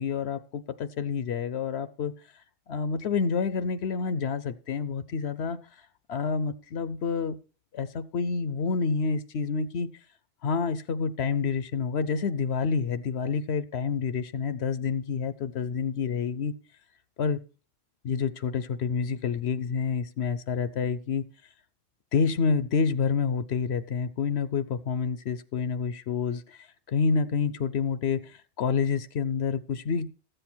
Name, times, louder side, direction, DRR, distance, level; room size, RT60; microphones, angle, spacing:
voice 1, 0.0-2.1 2.7-5.6 6.1-7.4 7.7-9.9 10.4-16.5 17.2-17.4 18.0-21.2 22.1-26.6 26.9-30.1, left 5 dB, 75° left, 13 dB, 0.9 m, -28 dB
13.5 x 7.8 x 4.3 m, 0.36 s
omnidirectional pair, 1.1 m